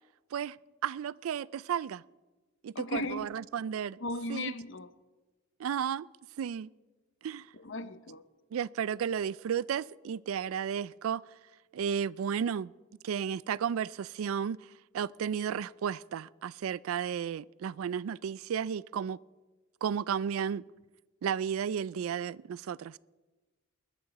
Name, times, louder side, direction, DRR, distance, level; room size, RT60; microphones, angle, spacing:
voice 1, 0.8-2.0 2.6-4.0 4.3-4.5 5.6-6.1 6.4-6.7 7.2-7.5 8.5-11.2 11.7-12.7 13.0-14.7 14.9-19.2 19.8-20.6 21.2-23.0, right 8 dB, 90° right, 0.3 m, -33 dB
voice 2, 2.7-3.3 4.0-4.9 7.5-8.2, left 2 dB, 60° left, 0.7 m, -36 dB
21.0 x 12.5 x 4.1 m
head